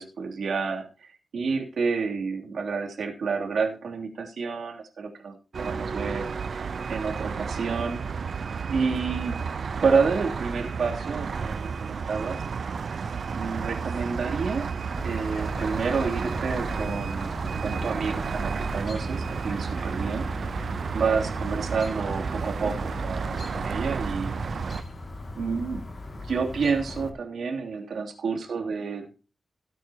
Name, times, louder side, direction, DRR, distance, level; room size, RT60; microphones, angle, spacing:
voice 1, 0.0-8.0 8.7-9.3 9.8-12.4 13.3-14.7 15.0-17.4 17.6-24.4 25.3-25.8 26.2-29.2, right 5 dB, 75° right, 2 dB, 3.1 m, -29 dB
sound 1, 5.5-24.8, right 5 dB, 60° right, 0.6 m, -32 dB
Chirp tweet, 15.0-27.1, left 2 dB, 35° left, 2.5 m, -39 dB
17.0 x 9.3 x 3.0 m, 0.32 s
wide cardioid pair, 140°, 0 cm